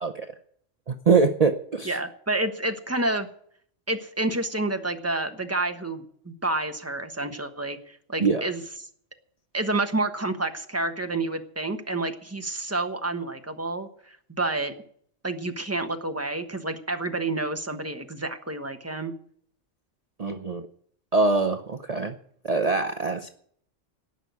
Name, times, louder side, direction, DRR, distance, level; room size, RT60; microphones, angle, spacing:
voice 1, 0.9-2.0 8.2-8.4 20.2-20.6 21.1-22.1 22.4-23.3, right 4 dB, 35° right, 5 dB, 0.7 m, -23 dB
voice 2, 1.8-3.3 3.9-8.6 9.5-14.7 15.2-19.1, right 2 dB, 10° right, 6 dB, 1.2 m, -29 dB
18.0 x 6.3 x 9.4 m, 0.63 s
omnidirectional pair, 1.3 m